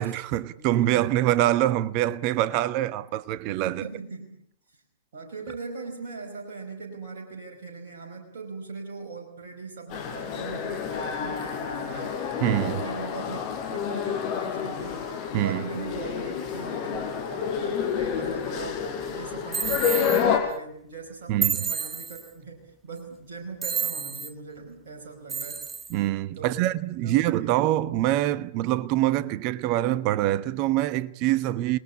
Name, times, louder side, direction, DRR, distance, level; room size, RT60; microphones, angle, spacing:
voice 1, 0.0-3.8 12.4-12.8 15.3-15.6 21.3-21.7 25.9-31.8, right 14 dB, 35° right, 1.0 m, -25 dB
voice 2, 0.6-1.1 3.7-4.4 4.7-4.8 5.1-12.2 12.6-15.0 15.4-18.8 19.1-25.6 26.3-26.7 27.0-27.5, right 4 dB, 55° right, 5.2 m, -40 dB
sound 1, 9.9-20.4, left 7 dB, 35° left, 5.7 m, -29 dB
sound 2, 19.5-20.2 21.4-22.3 23.6-24.3 25.3-25.9, right 6 dB, 10° right, 1.0 m, -29 dB
28.5 x 20.5 x 8.5 m
figure-of-eight pair, 105°, 0 cm